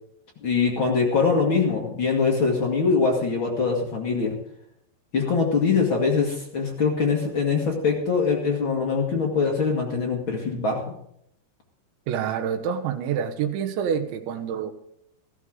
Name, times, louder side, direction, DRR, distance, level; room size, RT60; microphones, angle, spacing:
voice 1, 0.4-4.4 5.1-10.9, left 5 dB, 50° left, 1.6 m, -23 dB
voice 2, 12.1-14.7, right 8 dB, 85° right, 3.5 m, -27 dB
14.5 x 14.0 x 3.8 m
omnidirectional pair, 5.2 m